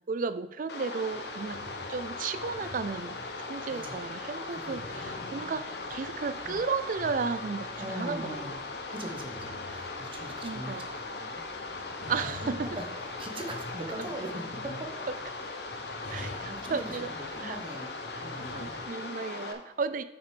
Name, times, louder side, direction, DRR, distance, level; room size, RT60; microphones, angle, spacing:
voice 1, 0.1-1.6 1.9-8.4 10.4-10.9 12.1-12.8 16.1-17.6 18.5-20.0, right 5 dB, 50° right, 14 dB, 0.4 m, -34 dB
sound 1, 0.7-19.5, left 3 dB, 65° left, 0.9 m, -39 dB
sound 2, 1.1-18.9, left 2 dB, 40° left, 0.5 m, -48 dB
voice 2, 4.5-5.0 5.4-5.6 6.4-6.6 7.8-8.6 8.9-11.4 12.0-12.8 13.2-14.7 16.0-17.9 18.2-18.7, right 1 dB, 30° right, 2 dB, 1.1 m, -41 dB
6.4 x 6.1 x 5.1 m, 1.0 s
head